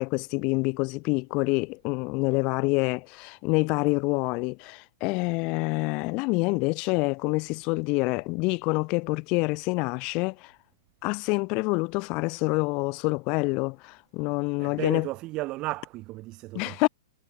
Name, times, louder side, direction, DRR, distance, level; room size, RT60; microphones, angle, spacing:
voice 1, 0.0-10.5 11.0-15.1 16.6-16.9, left 28 dB, 40° left, 0.5 m, -27 dB
voice 2, 14.6-16.8, right 19 dB, 35° right, 4.0 m, -34 dB
hypercardioid pair, 125°, 2 cm